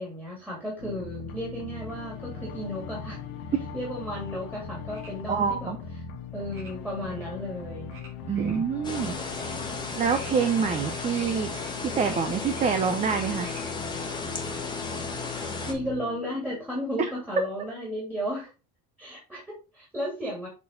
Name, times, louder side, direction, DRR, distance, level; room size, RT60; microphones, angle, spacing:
voice 1, 0.0-3.2 3.7-5.7 6.3-7.9 15.6-18.5 19.0-20.5, equal, 5° right, -4 dB, 2.2 m, -34 dB
sound 1, 0.8-17.3, left 5 dB, 70° left, 1.7 m, -39 dB
sound 2, 4.4-4.6 4.9-5.1 6.5-6.7 7.1-7.3 7.9-8.1 8.3-9.0 9.3-9.5 9.9-11.7 12.0-13.7, right 3 dB, 35° right, 2.9 m, -47 dB
voice 2, 5.3-5.8 8.3-9.1 10.0-11.5 11.8-13.5, right 6 dB, 20° right, 8 dB, 0.5 m, -26 dB
sound 3, 8.8-15.7, left 3 dB, 10° left, 1.4 m, -35 dB
7.1 x 4.2 x 3.6 m, 0.30 s
cardioid pair, 160°, 36 cm